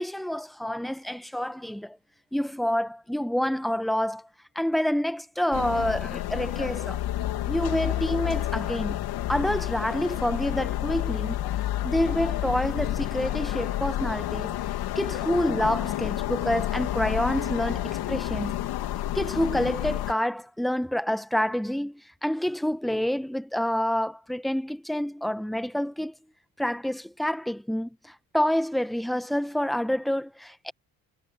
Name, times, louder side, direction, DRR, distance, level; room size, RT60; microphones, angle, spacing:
voice 1, 0.0-2.0 2.3-4.3 4.5-7.0 7.5-9.0 9.3-11.4 11.8-14.6 14.9-18.7 19.1-26.1 26.6-30.7, equal, ahead, 1.5 m, -28 dB
sound 1, 5.5-20.1, left 13 dB, 70° left, 3.4 m, -30 dB
supercardioid pair, 65°, 39 cm